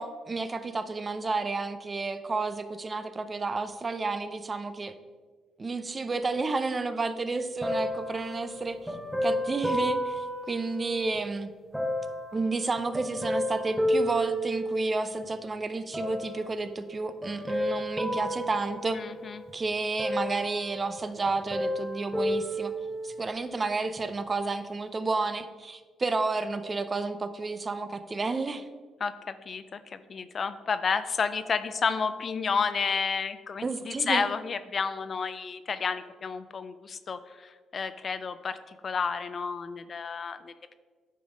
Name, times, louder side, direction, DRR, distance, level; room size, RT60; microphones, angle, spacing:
voice 1, 0.0-5.0 5.6-8.9 9.2-11.5 12.3-19.0 19.5-22.7 23.0-28.7 33.6-34.3, right 3 dB, 30° right, 11 dB, 0.5 m, -31 dB
sound 1, 7.6-11.2 11.7-15.2 15.9-16.6 17.2-19.5 20.0-21.0 21.3-23.3 24.0-24.1, equal, ahead, 0.9 m, -32 dB
voice 2, 18.9-19.4 29.0-40.7, left 5 dB, 45° left, 12 dB, 0.4 m, -31 dB
9.2 x 4.0 x 4.9 m, 1.4 s
cardioid pair, 90°, 0 cm